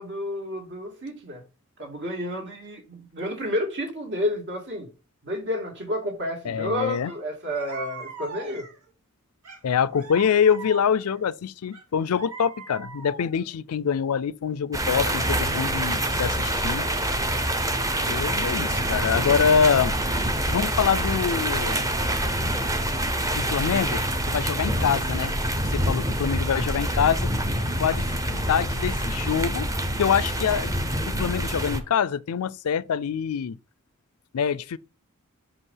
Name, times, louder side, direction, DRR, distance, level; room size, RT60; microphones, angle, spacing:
voice 1, 0.0-1.4 1.8-4.9 5.2-8.7, left 1 dB, 55° right, 2.6 m, -30 dB
voice 2, 6.4-7.1 9.6-16.9 18.1-19.9 20.5-21.9 23.3-25.4 25.6-27.3 27.8-29.7 30.0-30.7 31.0-33.6 34.3-34.8, left 7 dB, 75° left, 0.4 m, -25 dB
sound 1, 7.0-7.2 7.5-8.9 9.4-11.2 11.7-13.5, right 3 dB, 85° right, 1.9 m, -41 dB
sound 2, 14.7-31.8, right 1 dB, 15° right, 0.9 m, -26 dB
6.2 x 5.4 x 5.6 m
head